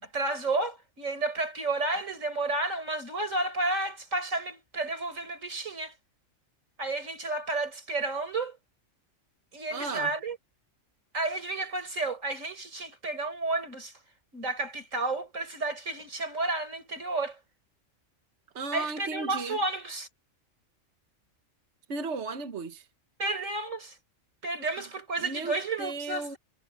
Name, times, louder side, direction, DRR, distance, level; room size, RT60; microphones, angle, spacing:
voice 1, 0.0-5.9 6.8-8.6 9.5-10.4 11.1-13.9 14.3-17.4 18.7-20.1 23.2-24.0 24.4-26.4, right 2 dB, 85° right, 5.0 m, -31 dB
voice 2, 9.7-10.1 18.5-19.6 21.9-22.9 24.7-26.4, right 3 dB, 65° right, 1.4 m, -36 dB
omnidirectional pair, 1.3 m